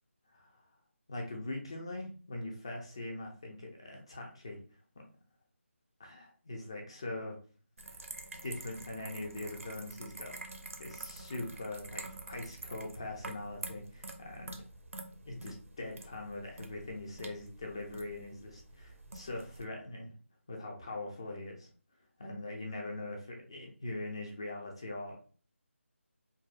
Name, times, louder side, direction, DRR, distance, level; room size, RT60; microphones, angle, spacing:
voice 1, 0.3-0.7 1.1-4.6 6.0-7.4 7.9-8.0 8.4-14.6 15.3-20.1 20.5-21.7 22.2-25.2, left 2 dB, 25° left, 1 dB, 0.3 m, -42 dB
sound 1, 7.8-19.6, right 2 dB, 80° right, 0.5 m, -47 dB
2.6 x 2.1 x 2.3 m, 0.40 s
figure-of-eight pair, 170°, 7 cm